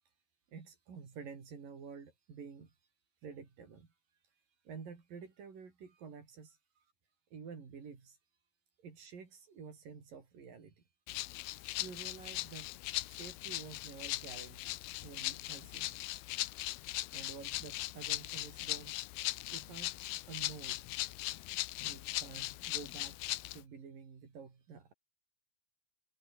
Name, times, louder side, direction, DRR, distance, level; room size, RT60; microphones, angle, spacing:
voice 1, 0.5-2.7 3.2-3.9 4.7-6.6 7.3-8.2 8.8-10.8 11.8-12.7 13.1-16.0 17.1-21.1 21.8-23.2 23.5-24.9, right 6 dB, 55° right, 5.9 m, -50 dB
Rattle (instrument), 11.1-23.6, left 18 dB, 80° left, 2.5 m, -39 dB
omnidirectional pair, 4.7 m